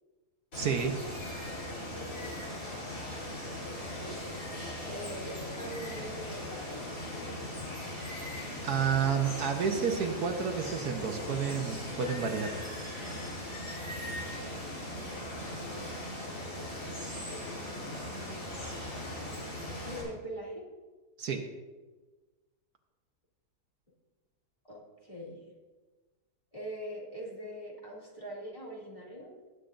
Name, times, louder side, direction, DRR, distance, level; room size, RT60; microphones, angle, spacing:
Water, 0.5-20.0, left 1 dB, 50° left, 4.1 m, -39 dB
voice 1, 0.5-1.0 8.6-12.6 21.2-21.4, right 6 dB, 70° right, 4 dB, 1.4 m, -30 dB
voice 2, 3.8-4.2 4.8-6.8 14.1-14.4 15.5-15.9 17.2-18.4 19.8-20.7 24.7-25.4 26.5-29.3, right 1 dB, 20° left, -4 dB, 2.6 m, -43 dB
19.5 x 9.1 x 2.6 m, 1.3 s
omnidirectional pair, 1.8 m